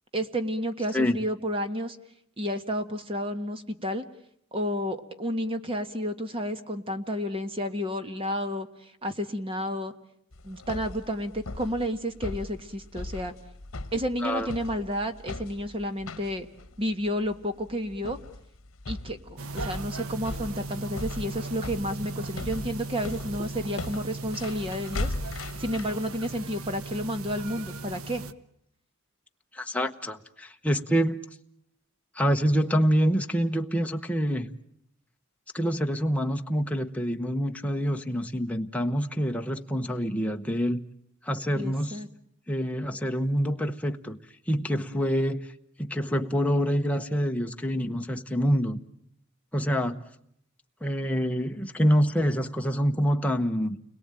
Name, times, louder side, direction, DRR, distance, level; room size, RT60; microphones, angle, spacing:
voice 1, 0.1-2.0 2.4-4.0 4.5-9.9 10.4-13.3 13.9-16.5 16.8-18.2 18.9-28.2 41.5-42.1, equal, 25° right, 1.4 m, -31 dB
sound 1, 10.3-25.9, left 2 dB, 70° left, 1.2 m, -39 dB
voice 2, 14.2-14.5 29.5-31.2 32.1-34.5 35.5-40.8 41.2-42.0 42.5-44.2 44.5-45.5 45.8-48.8 49.5-50.0 50.8-53.8, equal, 5° left, 1.0 m, -26 dB
sound 2, 19.4-28.3, right 3 dB, 85° right, 1.1 m, -38 dB
30.0 x 22.0 x 9.0 m
head